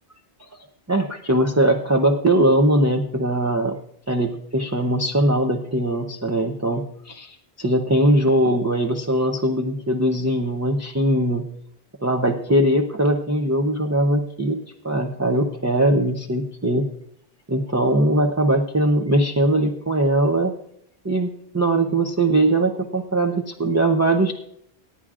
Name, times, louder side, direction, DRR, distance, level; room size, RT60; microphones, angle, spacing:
voice 1, 0.9-3.8 4.1-11.5 12.0-14.6 14.8-16.9 17.5-20.5 21.0-24.3, right 1 dB, 20° right, 2 dB, 0.6 m, -21 dB
24.0 x 9.9 x 2.5 m, 0.69 s
omnidirectional pair, 1.0 m